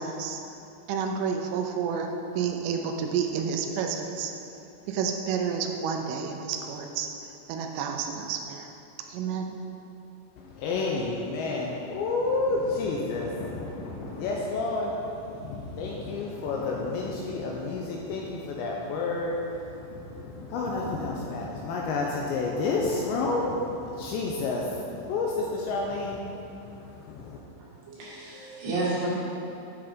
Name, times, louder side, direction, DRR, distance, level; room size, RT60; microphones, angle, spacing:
voice 1, 0.0-0.4 0.9-4.3 4.9-7.1 7.5-8.6 9.1-9.5, right 6 dB, 85° right, 3 dB, 3.2 m, -30 dB
voice 2, 10.4-27.4, left 3 dB, 80° left, -2 dB, 2.7 m, -30 dB
voice 3, 27.5-29.1, right 3 dB, 60° right, -8 dB, 3.7 m, -32 dB
9.6 x 5.8 x 5.0 m, 2.8 s
omnidirectional pair, 5.7 m